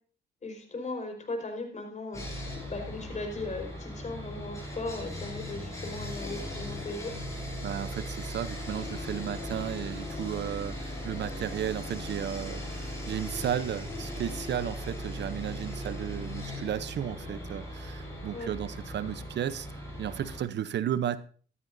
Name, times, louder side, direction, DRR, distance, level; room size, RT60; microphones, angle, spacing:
voice 1, 0.4-7.2 18.3-18.5, left 2 dB, 35° left, 3 dB, 4.8 m, -38 dB
Sawing, 2.1-20.4, left 1 dB, 15° left, 7.0 m, -38 dB
voice 2, 7.6-19.7 20.0-21.2, right 10 dB, 60° right, 14 dB, 0.7 m, -34 dB
15.0 x 12.5 x 2.7 m, 0.41 s
cardioid pair, 90°, 20 cm